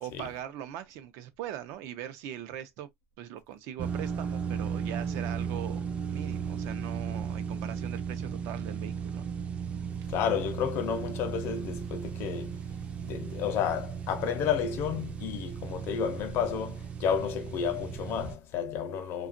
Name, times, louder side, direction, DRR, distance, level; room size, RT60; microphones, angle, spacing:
voice 1, 0.0-2.9 3.2-9.4, right 11 dB, 85° right, 0.6 m, -41 dB
sound 1, 3.8-18.4, right 6 dB, 25° right, 0.3 m, -35 dB
voice 2, 10.1-12.6 13.0-19.3, left 7 dB, 60° left, 0.6 m, -31 dB
2.8 x 2.3 x 2.5 m
cardioid pair, 155°, 5 cm